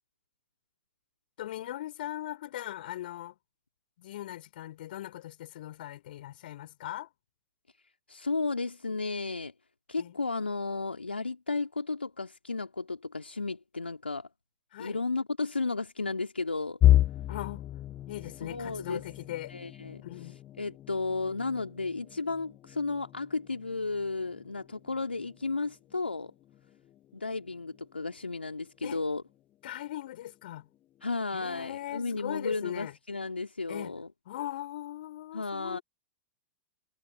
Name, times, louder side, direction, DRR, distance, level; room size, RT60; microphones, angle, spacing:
voice 1, 1.4-3.4 4.0-7.1 10.0-10.2 14.7-15.0 17.3-17.7 18.1-19.5 20.0-20.4 28.8-29.0 29.6-30.7 31.3-33.0 33.7-34.0 34.3-35.8, left 13 dB, 60° left, 5.8 m, -39 dB
voice 2, 8.1-9.5 9.9-14.3 14.8-16.8 18.4-19.0 19.5-20.0 20.6-26.3 27.1-29.2 31.0-34.1 35.3-35.8, left 3 dB, 85° left, 2.8 m, -33 dB
sound 1, 16.8-28.6 29.1-29.3 29.7-29.9 30.7-31.2, left 13 dB, 30° left, 0.9 m, -32 dB
figure-of-eight pair, 100°, 6 cm